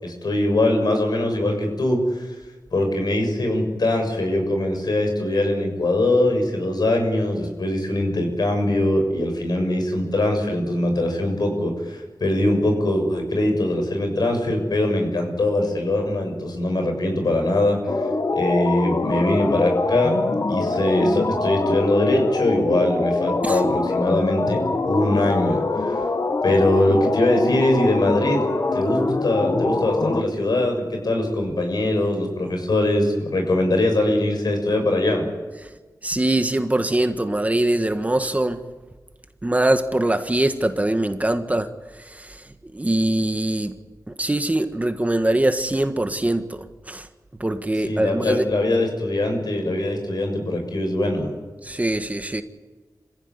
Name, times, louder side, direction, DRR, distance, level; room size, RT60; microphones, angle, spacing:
voice 1, 0.0-2.4 2.7-17.8 18.3-20.2 20.5-24.6 24.9-26.0 26.4-28.4 28.7-35.3 47.9-51.3, left 1 dB, 75° left, 4 dB, 7.0 m, -22 dB
sound 1, 17.9-30.2, left 3 dB, 50° left, 1.7 m, -24 dB
voice 2, 36.0-38.6 39.4-41.7 42.0-43.7 44.1-47.1 47.4-48.5 51.6-52.4, right 1 dB, 20° right, 8 dB, 1.6 m, -23 dB
27.5 x 16.0 x 9.8 m, 1.3 s
wide cardioid pair, 100°, 7 cm